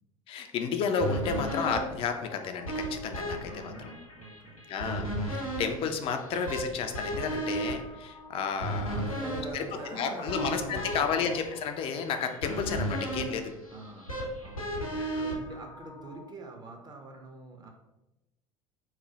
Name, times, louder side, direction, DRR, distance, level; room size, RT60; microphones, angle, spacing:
voice 1, 0.3-3.9 4.7-9.0 9.5-9.6 9.9-13.5 15.0-15.4, left 6 dB, 35° left, 6 dB, 0.4 m, -32 dB
sound 1, 1.0-16.2, right 1 dB, 90° left, 0.8 m, -35 dB
voice 2, 3.4-4.6 8.9-11.1 13.7-17.7, right 2 dB, 25° right, 3 dB, 0.6 m, -45 dB
sound 2, 8.5-14.5, right 1 dB, 60° right, 0.7 m, -49 dB
3.0 x 2.1 x 3.8 m, 1.0 s
figure-of-eight pair, 65°, 17 cm